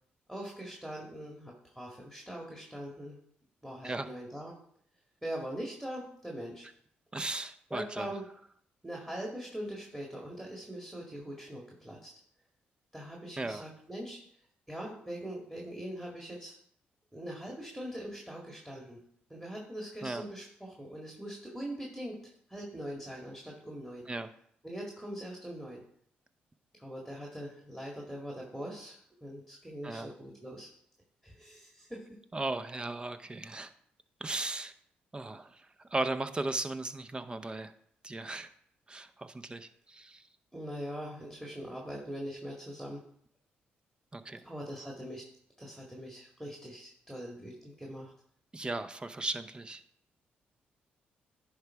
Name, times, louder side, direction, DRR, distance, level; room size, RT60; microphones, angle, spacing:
voice 1, 0.3-3.2 3.6-4.5 5.2-6.7 7.7-8.2 8.8-12.1 12.9-14.2 14.7-16.6 17.1-19.0 19.3-24.0 24.6-25.8 26.8-30.7 31.2-32.0 40.5-43.0 44.4-45.2 45.6-48.1, equal, 5° right, -1 dB, 1.8 m, -42 dB
voice 2, 7.1-8.1 13.4-13.6 20.0-20.2 24.1-24.3 29.8-30.1 32.3-33.7 34.2-34.7 35.1-37.7 38.0-38.5 38.9-40.2 44.1-44.4 48.5-49.8, right 2 dB, 25° right, 11 dB, 0.7 m, -36 dB
10.5 x 3.5 x 4.7 m, 0.66 s
supercardioid pair, 65°, 4 cm